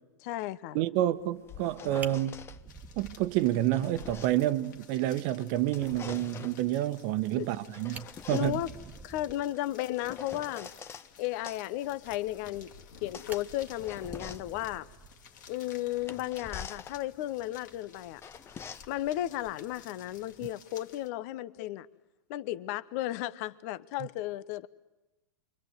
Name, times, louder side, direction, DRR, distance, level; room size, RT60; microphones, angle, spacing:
voice 1, 0.2-0.8 7.4-7.5 8.3-8.7 9.0-10.7 11.2-12.7 13.0-14.9 15.5-18.2 18.9-21.9 22.3-24.7, left 14 dB, 55° left, 0.9 m, -34 dB
voice 2, 0.7-2.4 3.0-8.6, right 13 dB, 50° right, 1.2 m, -29 dB
sound 1, 1.2-2.6 3.4-5.2 5.5-6.7 7.4-11.1 11.5-20.5, left 7 dB, 25° left, 1.0 m, -47 dB
Fire, 2.0-3.9 4.3-4.4 4.8-4.9 5.2-5.3 7.4-7.5 7.8-9.6 12.4-12.9 13.3-15.5 16.8-17.0, right 4 dB, 15° right, 1.4 m, -48 dB
sound 2, 2.7-21.1, left 6 dB, 70° left, 2.5 m, -54 dB
29.0 x 24.0 x 8.1 m
hypercardioid pair, 105°, 10 cm